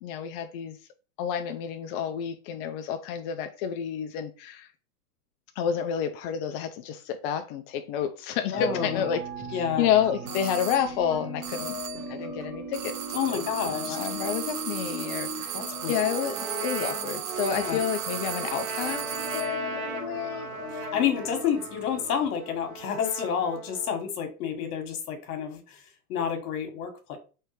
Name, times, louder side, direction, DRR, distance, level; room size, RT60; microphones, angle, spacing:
voice 1, 0.0-0.8 1.2-4.7 5.6-9.2 9.5-11.8 12.1-13.0 13.3-13.4 13.9-15.6 15.9-20.5, left 8 dB, 40° left, 0.4 m, -30 dB
voice 2, 8.5-9.0 9.5-9.9 13.1-14.0 15.5-15.9 17.5-17.8 20.7-25.8 26.1-27.2, left 8 dB, 70° left, 1.4 m, -29 dB
sound 1, 8.5-22.3, right 1 dB, 20° right, 1.9 m, -38 dB
sound 2, 10.3-11.0 11.4-12.2 12.7-19.6, right 10 dB, 35° right, 0.8 m, -36 dB
Trumpet, 15.9-24.0, right 3 dB, 65° right, 1.3 m, -39 dB
4.4 x 3.2 x 3.1 m
hypercardioid pair, 115°, 46 cm